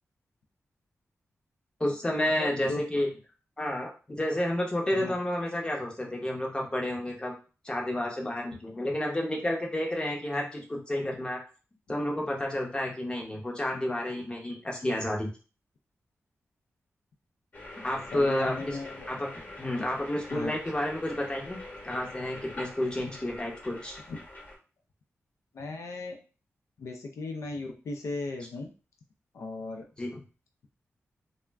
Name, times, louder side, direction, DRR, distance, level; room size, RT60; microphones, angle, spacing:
voice 1, 1.8-3.1 3.6-7.4 7.6-11.4 11.9-15.3 17.8-18.8 19.1-19.3 19.6-24.0 30.0-30.2, left 1 dB, 20° left, 0 dB, 0.6 m, -30 dB
voice 2, 2.4-2.8 4.9-5.1 18.1-19.1 20.3-20.5 24.1-24.2 25.5-26.2 26.8-28.7 29.3-29.9, left 3 dB, 85° left, 3 dB, 0.5 m, -37 dB
sound 1, 17.5-24.5, left 1 dB, 40° left, 1.0 m, -44 dB
2.4 x 2.1 x 3.3 m, 0.35 s
wide cardioid pair, 130°, 5 cm